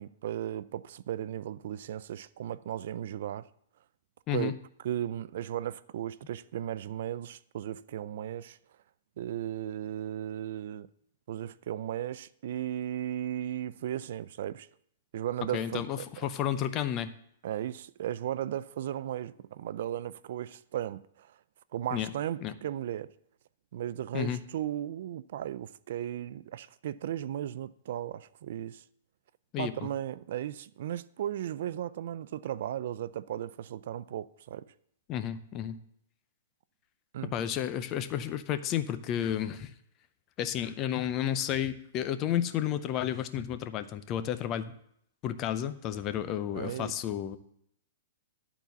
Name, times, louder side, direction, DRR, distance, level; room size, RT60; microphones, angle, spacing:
voice 1, 0.0-3.5 4.3-4.5 4.8-8.6 9.2-10.9 11.3-14.7 15.1-16.1 17.4-21.3 21.7-23.1 23.7-28.8 29.6-34.7 37.1-37.4 46.5-46.9, right 11 dB, 55° right, 0.3 m, -36 dB
voice 2, 15.5-17.1 21.9-22.1 22.4-22.5 24.1-24.4 29.5-29.9 35.1-35.8 37.3-39.7 40.4-44.7 45.2-47.4, left 10 dB, 25° left, 0.5 m, -32 dB
11.5 x 4.1 x 7.0 m
hypercardioid pair, 165°, 0 cm